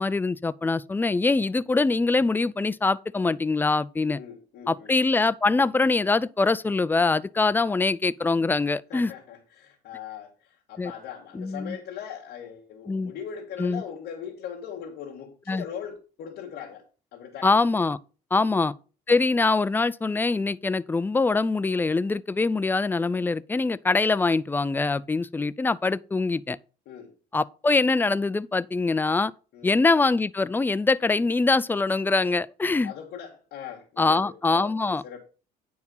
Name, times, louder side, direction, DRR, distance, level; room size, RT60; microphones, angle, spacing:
voice 1, 0.0-4.2 4.7-9.1 10.8-10.9 11.3-11.8 12.9-13.1 13.6-13.8 15.5-15.6 17.4-18.0 18.3-18.7 19.1-26.6 27.3-29.3 29.6-32.9 34.0-35.0, left 3 dB, 10° left, 0.4 m, -23 dB
voice 2, 4.1-4.9 8.9-16.8 17.1-17.5 18.4-18.7 26.9-27.1 29.5-29.8 32.8-34.7 35.0-35.2, left 8 dB, 75° left, 1.9 m, -40 dB
9.5 x 4.7 x 5.5 m
cardioid pair, 110°, 17 cm